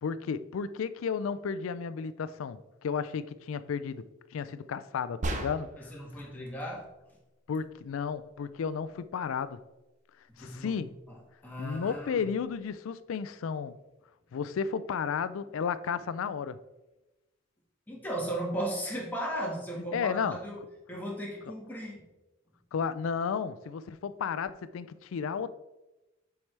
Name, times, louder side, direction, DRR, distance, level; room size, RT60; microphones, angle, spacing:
voice 1, 0.0-4.0 4.3-5.9 7.5-9.6 10.4-10.9 11.6-13.8 14.3-16.6 19.9-20.4 22.7-25.5, left 6 dB, 80° left, 0.4 m, -33 dB
sound 1, 5.2-5.9, right 1 dB, 40° right, 0.7 m, -33 dB
voice 2, 5.8-6.8 10.4-10.8 11.1-11.2 11.4-12.3 17.9-20.6 20.9-22.0, right 1 dB, 10° left, 1.6 m, -36 dB
7.1 x 4.7 x 3.3 m
head